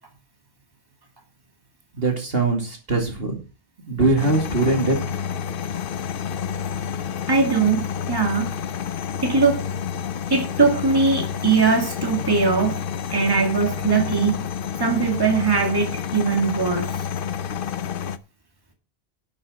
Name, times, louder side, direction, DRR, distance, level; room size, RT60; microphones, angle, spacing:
voice 1, 2.0-3.4 3.9-5.0, right 2 dB, 65° right, 3 dB, 2.6 m, -21 dB
sound 1, 4.2-18.2, left 8 dB, 60° left, 0.8 m, -29 dB
voice 2, 7.3-8.5 9.2-9.6 10.3-12.8 13.1-14.4 14.8-17.1, right 4 dB, 20° right, 3 dB, 2.3 m, -20 dB
11.5 x 6.3 x 6.1 m, 0.33 s
omnidirectional pair, 1.1 m